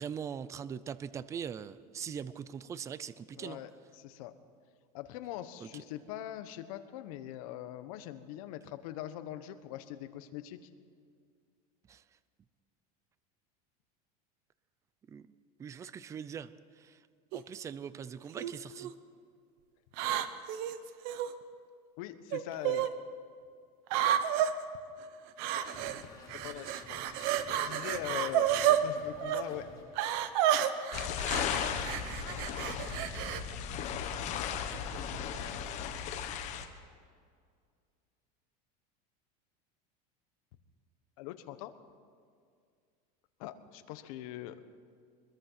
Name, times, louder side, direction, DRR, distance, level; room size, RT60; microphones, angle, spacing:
voice 1, 0.0-3.6 5.6-5.8 11.9-12.0 15.1-15.3 15.6-17.0 17.3-19.0, right 7 dB, 15° right, 16 dB, 0.5 m, -41 dB
voice 2, 3.4-3.7 4.0-4.3 4.9-10.7 22.0-22.9 24.4-24.5 26.4-29.7 41.2-41.7 43.4-44.7, left 13 dB, 60° left, 10 dB, 1.4 m, -42 dB
sound 1, 17.3-17.6 18.4-18.9 19.9-21.3 22.3-22.9 23.9-24.5 25.4-26.0 26.3-28.8 29.2-29.4 30.0-33.4, right 11 dB, 50° right, 1.1 m, -31 dB
sound 2, 25.4-29.8, left 3 dB, 20° left, 5.1 m, -52 dB
sound 3, 30.9-36.6, left 8 dB, 35° left, 1.4 m, -36 dB
23.0 x 21.5 x 5.8 m, 2.2 s
supercardioid pair, 165°, 20 cm